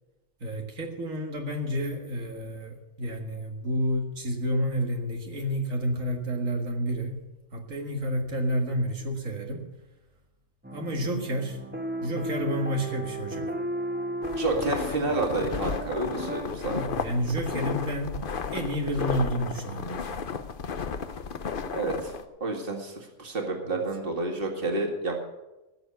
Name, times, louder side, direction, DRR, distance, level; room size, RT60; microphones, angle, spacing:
voice 1, 0.4-7.2 7.5-9.7 10.7-11.6 12.0-13.5 16.7-18.2 18.5-20.2 23.7-23.8, equal, 85° right, 2 dB, 2.2 m, -30 dB
sound 1, 10.6-16.4, right 1 dB, 10° right, 1.4 m, -34 dB
sound 2, 14.2-22.2, left 6 dB, 50° left, 0.9 m, -34 dB
voice 2, 14.4-16.8 21.7-22.1 22.4-25.2, right 3 dB, 45° right, 2 dB, 2.3 m, -29 dB
16.0 x 7.0 x 7.7 m, 1.0 s
omnidirectional pair, 1.3 m